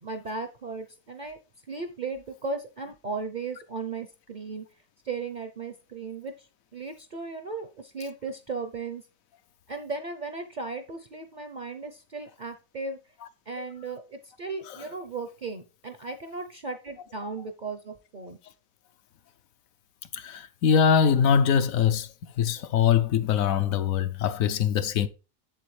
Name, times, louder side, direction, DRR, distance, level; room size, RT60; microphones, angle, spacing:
voice 1, 0.0-1.4 1.7-4.6 5.0-9.0 9.7-13.0 13.5-18.4, right 4 dB, 50° right, 0.6 m, -36 dB
voice 2, 20.1-22.1 22.4-25.1, left 7 dB, 75° left, 1.0 m, -22 dB
7.5 x 7.5 x 3.2 m
omnidirectional pair, 1.5 m